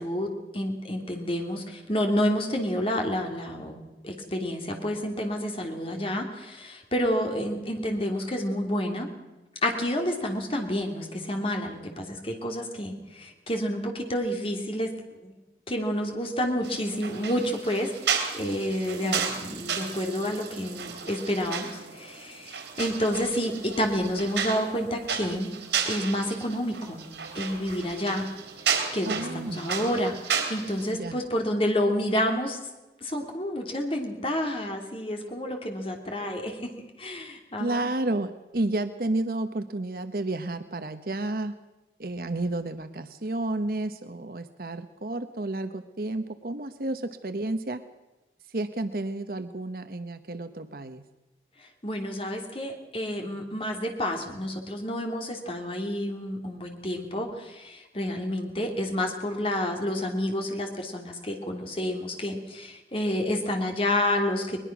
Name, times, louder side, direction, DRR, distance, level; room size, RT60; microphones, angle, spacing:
voice 1, 0.0-9.1 9.6-14.9 15.2-15.4 15.7-17.9 18.3-25.5 25.8-27.0 27.3-28.3 28.9-32.6 33.0-36.7 37.0-37.8 51.8-64.6, left 1 dB, 30° left, 3 dB, 3.0 m, -29 dB
sound 1, 16.6-30.9, right 6 dB, 90° right, 3.9 m, -33 dB
voice 2, 29.1-29.7 30.9-31.2 37.6-41.6 42.0-47.8 48.5-51.0, right 2 dB, 55° right, 9 dB, 1.0 m, -31 dB
21.5 x 21.0 x 6.1 m, 1.1 s
head